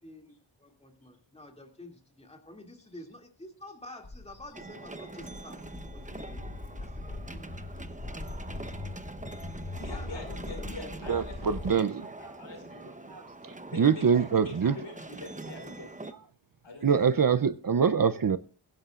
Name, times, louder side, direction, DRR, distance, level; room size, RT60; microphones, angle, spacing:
voice 1, 0.0-6.4 6.7-8.8 9.7-11.1, left 1 dB, 15° left, 2.5 m, -49 dB
Walk footsteps, 4.0-11.7, left 2 dB, 40° left, 2.0 m, -41 dB
sound 1, 4.5-16.1, right 2 dB, 15° right, 0.9 m, -44 dB
voice 2, 9.8-11.8 12.2-12.9 13.7-16.2 16.6-17.0, left 2 dB, 70° left, 5.3 m, -44 dB
voice 3, 11.1-12.1 13.1-14.7 16.8-18.4, right 6 dB, 45° right, 0.6 m, -25 dB
22.5 x 10.5 x 2.4 m
wide cardioid pair, 70°, 47 cm